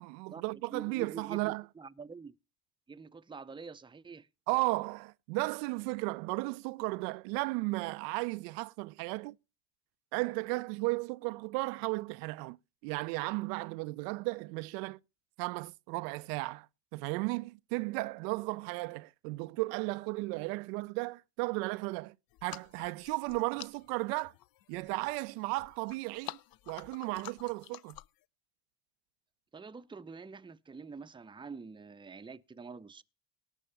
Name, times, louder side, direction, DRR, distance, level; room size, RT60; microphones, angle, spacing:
voice 1, 0.0-1.6 4.5-9.4 10.1-12.6 12.8-15.0 15.4-16.7 16.9-22.1 22.4-24.3 24.7-26.4 26.7-28.0, right 24 dB, 70° right, 0.6 m, -35 dB
voice 2, 0.7-2.3 2.9-4.3 29.5-33.0, right 5 dB, 10° right, 0.7 m, -46 dB
sound 1, 22.3-28.3, left 14 dB, 45° left, 0.7 m, -50 dB
18.5 x 6.3 x 5.7 m
hypercardioid pair, 65°, 50 cm